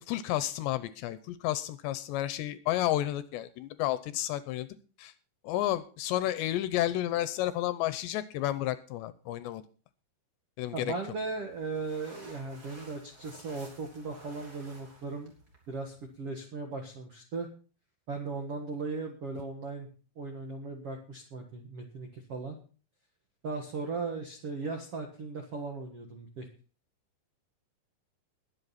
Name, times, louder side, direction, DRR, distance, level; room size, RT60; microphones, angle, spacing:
voice 1, 0.0-4.7 5.0-5.1 5.4-9.6 10.6-10.9, left 14 dB, 80° left, 14 dB, 2.7 m, -31 dB
voice 2, 10.7-15.3 15.7-17.5 18.1-19.9 20.1-22.6 23.4-26.5, right 3 dB, 65° right, 3 dB, 1.4 m, -37 dB
sound 1, 11.1-16.2, right 2 dB, 20° right, 4.1 m, -53 dB
21.0 x 7.9 x 4.1 m, 0.38 s
omnidirectional pair, 5.4 m